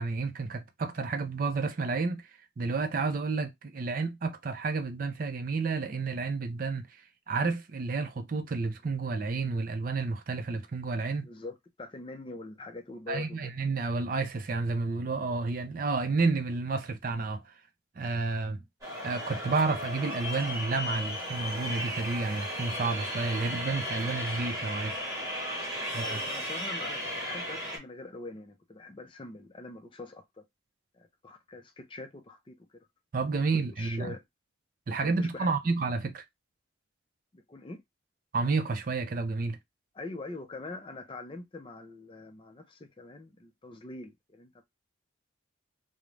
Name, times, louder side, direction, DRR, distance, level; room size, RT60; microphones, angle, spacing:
voice 1, 0.0-2.2 2.6-6.9 7.3-11.3 13.1-17.5 18.0-18.6 19.0-25.0 25.9-26.2 33.1-34.2 34.9-36.2 38.3-39.6, right 3 dB, 45° right, 0.4 m, -30 dB
voice 2, 11.2-13.5 25.8-30.4 30.9-32.9 33.8-34.2 34.9-35.5 37.3-37.8 39.9-44.6, left 2 dB, 25° left, 0.4 m, -44 dB
sound 1, 18.8-27.8, equal, 15° right, 1.0 m, -35 dB
2.4 x 2.0 x 3.1 m
head